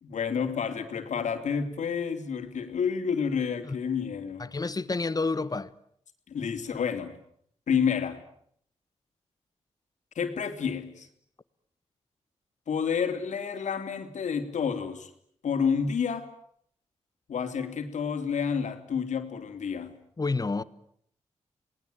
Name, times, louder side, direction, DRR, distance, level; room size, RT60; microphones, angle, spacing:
voice 1, 0.0-4.4 6.3-7.2 7.7-8.2 10.1-11.1 12.7-15.1 15.4-16.3 17.3-20.0, left 6 dB, 85° left, 3.2 m, -29 dB
voice 2, 4.4-5.7 20.2-20.6, left 3 dB, 30° left, 1.3 m, -29 dB
27.5 x 20.0 x 9.2 m
cardioid pair, 80°, 12 cm